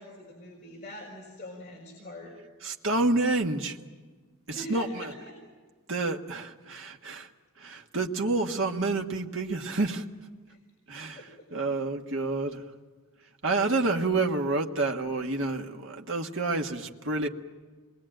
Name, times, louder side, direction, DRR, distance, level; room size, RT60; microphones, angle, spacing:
voice 1, 0.0-2.3 4.5-5.4 10.5-10.6 11.1-11.5 13.5-14.0, equal, 35° left, -3 dB, 5.0 m, -43 dB
voice 2, 2.6-3.8 4.5-5.1 5.9-7.3 7.6-10.1 10.9-12.6 13.4-17.3, right 3 dB, 60° right, 2 dB, 1.6 m, -29 dB
26.5 x 22.0 x 9.0 m, 1.4 s
head